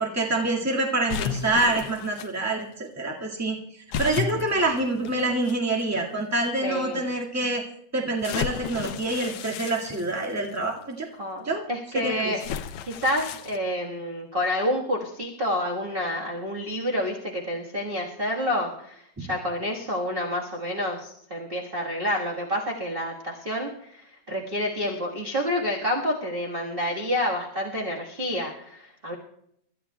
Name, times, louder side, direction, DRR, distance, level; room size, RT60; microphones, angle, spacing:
voice 1, 0.0-3.6 4.0-7.6 7.9-11.1 11.4-11.6 11.9-12.3, right 2 dB, 10° right, -2 dB, 1.2 m, -26 dB
sound 1, 1.1-2.3 3.9-5.5 6.3-6.4 8.2-10.6 12.4-13.6, left 8 dB, 80° left, 1.3 m, -33 dB
voice 2, 6.6-7.1 11.2-12.4 12.8-29.1, left 1 dB, 35° right, -2 dB, 0.9 m, -29 dB
30.0 x 13.5 x 2.3 m, 0.72 s
omnidirectional pair, 3.4 m